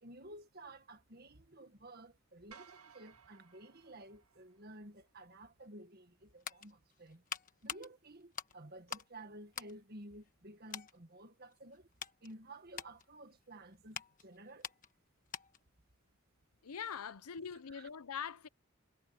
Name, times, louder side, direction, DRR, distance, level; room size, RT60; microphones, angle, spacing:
voice 1, 0.0-7.3 7.6-11.9 12.2-14.7 17.7-17.9, right 1 dB, 45° right, 1.7 m, -53 dB
sound 1, 2.5-4.9, right 6 dB, 90° right, 2.1 m, -60 dB
sound 2, 6.0-9.2 9.5-10.4 10.7-11.0 11.5-15.7 16.0-16.2, left 7 dB, 35° left, 1.4 m, -47 dB
voice 2, 16.6-18.5, left 7 dB, 90° left, 0.7 m, -43 dB
head